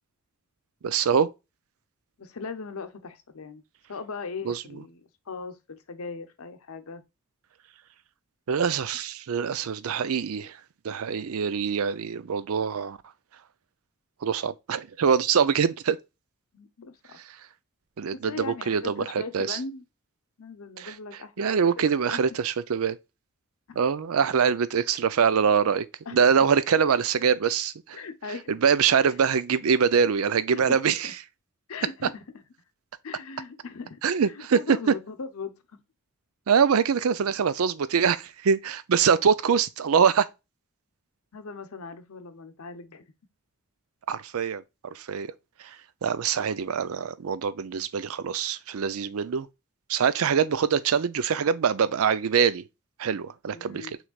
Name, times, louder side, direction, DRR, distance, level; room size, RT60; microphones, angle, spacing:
voice 1, 0.8-1.3 4.4-4.6 8.5-10.6 10.8-13.0 14.2-16.0 18.0-19.6 20.8-20.9 21.4-23.0 23.8-25.9 26.1-28.0 28.5-31.1 34.0-34.8 36.5-40.3 44.1-44.6 44.9-45.3 45.6-45.8 46.0-49.5 49.9-52.6 53.0-54.0, right 6 dB, 75° right, 0.4 m, -24 dB
voice 2, 2.2-3.6 3.9-5.0 5.3-7.0 16.5-17.2 18.3-19.8 20.4-22.2 23.7-23.8 26.1-26.2 27.9-28.5 29.6-29.7 30.5-31.1 31.7-32.4 33.0-34.0 34.3-35.6 41.3-43.0 53.5-54.0, left 4 dB, 75° left, 0.7 m, -39 dB
6.1 x 3.3 x 2.3 m
head